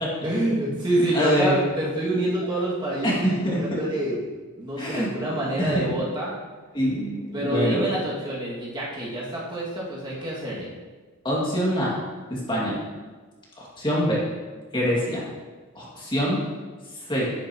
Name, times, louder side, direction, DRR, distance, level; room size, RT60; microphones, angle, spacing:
voice 1, 0.2-4.2 4.6-6.3 7.3-10.7, right 1 dB, 20° right, -7 dB, 2.1 m, -27 dB
voice 2, 1.1-1.6 3.0-3.8 4.8-5.1 5.6-5.9 6.7-7.9 11.2-11.9 12.3-12.8 13.6-14.2 14.7-15.2 15.8-16.4 17.1-17.3, equal, 25° left, -5 dB, 2.2 m, -25 dB
10.0 x 9.7 x 3.0 m, 1.4 s
head